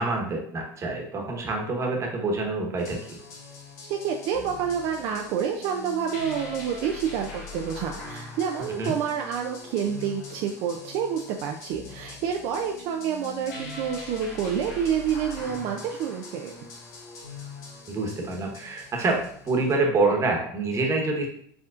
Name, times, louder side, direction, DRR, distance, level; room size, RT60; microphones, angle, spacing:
voice 1, 0.0-3.0 8.7-8.9 17.9-19.2 19.4-21.3, right 3 dB, 35° right, 1 dB, 1.2 m, -26 dB
sound 1, 2.8-19.8, left 3 dB, 85° left, 1.3 m, -42 dB
voice 2, 3.9-16.5, right 8 dB, 65° right, 2 dB, 0.5 m, -28 dB
5.0 x 3.6 x 2.5 m, 0.63 s
supercardioid pair, 105°, 9 cm